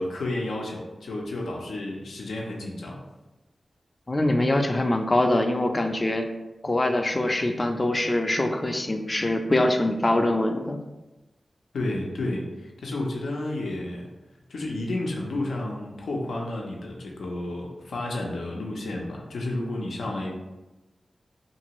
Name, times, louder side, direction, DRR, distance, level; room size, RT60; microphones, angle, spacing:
voice 1, 0.0-3.0 11.7-14.0 14.5-20.3, left 2 dB, 90° left, -1 dB, 0.5 m, -31 dB
voice 2, 4.1-6.3 6.6-10.8, left 1 dB, 35° left, 4 dB, 0.4 m, -23 dB
2.8 x 2.6 x 3.0 m, 1.0 s
cardioid pair, 55°, 0 cm